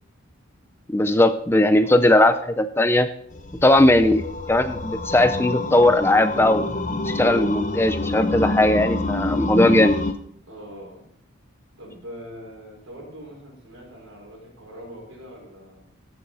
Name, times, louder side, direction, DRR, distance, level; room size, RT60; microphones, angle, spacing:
voice 1, 0.9-3.1 3.6-6.7 7.0-10.0, left 1 dB, 10° left, 11 dB, 0.4 m, -18 dB
sound 1, 3.3-10.1, left 2 dB, 35° left, 0.8 m, -27 dB
voice 2, 10.5-11.1 11.8-15.9, equal, 75° right, -1 dB, 4.8 m, -42 dB
14.0 x 6.5 x 4.1 m, 0.64 s
head